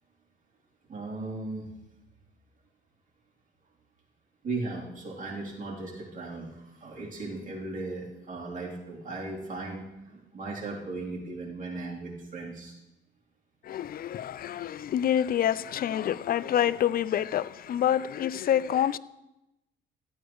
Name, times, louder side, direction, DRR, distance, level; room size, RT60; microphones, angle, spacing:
voice 1, 0.9-1.7 4.4-12.7, right 3 dB, 40° right, 3.2 m, -37 dB
voice 2, 13.7-19.0, left 10 dB, 50° left, 0.4 m, -27 dB
13.5 x 9.0 x 3.1 m
cardioid pair, 90°, 20 cm